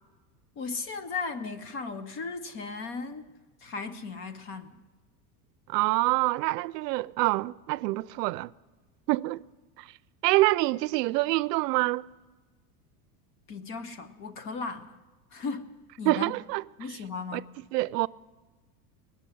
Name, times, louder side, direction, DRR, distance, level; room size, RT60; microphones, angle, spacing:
voice 1, 0.6-3.2 3.6-4.8 13.5-15.0 15.3-16.3 16.8-17.5, left 4 dB, 25° left, 0.7 m, -36 dB
voice 2, 5.7-8.5 9.1-9.4 10.2-12.1 16.1-16.6 17.3-17.4 17.7-18.1, right 20 dB, 90° right, 0.5 m, -26 dB
19.5 x 7.0 x 10.0 m
supercardioid pair, 165°, 47 cm